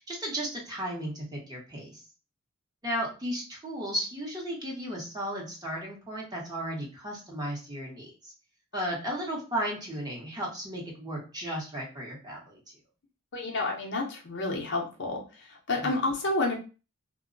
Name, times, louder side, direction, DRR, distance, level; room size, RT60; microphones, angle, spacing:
voice 1, 0.0-2.0 2.8-8.3 8.7-12.6 15.8-15.9, equal, 20° right, -3 dB, 0.9 m, -35 dB
voice 2, 13.3-15.2 15.7-16.5, left 2 dB, 55° left, 1 dB, 0.7 m, -29 dB
2.2 x 2.0 x 3.7 m, 0.33 s
head